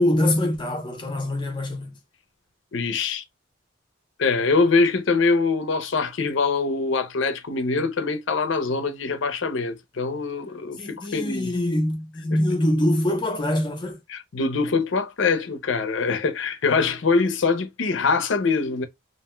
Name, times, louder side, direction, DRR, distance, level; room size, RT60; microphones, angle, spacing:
voice 1, 0.0-2.0 10.8-14.0, left 1 dB, 25° left, 0.6 m, -24 dB
voice 2, 2.7-3.2 4.2-11.5 12.3-12.4 14.1-18.9, left 4 dB, 75° left, 0.5 m, -23 dB
2.5 x 2.2 x 3.0 m
head